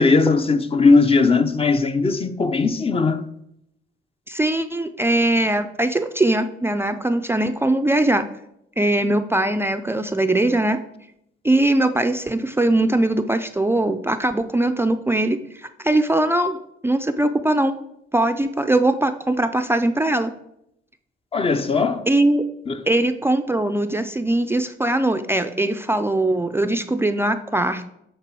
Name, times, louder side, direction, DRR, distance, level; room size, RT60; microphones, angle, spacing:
voice 1, 0.0-3.2 21.3-22.0 22.7-22.8, left 4 dB, 30° left, 0.7 m, -18 dB
voice 2, 4.3-8.3 8.8-10.8 11.4-15.4 15.8-16.6 16.8-17.7 18.1-20.3 22.1-22.4 22.9-27.9, right 1 dB, 10° right, 0.5 m, -21 dB
8.9 x 4.0 x 6.1 m
cardioid pair, 90°, 20 cm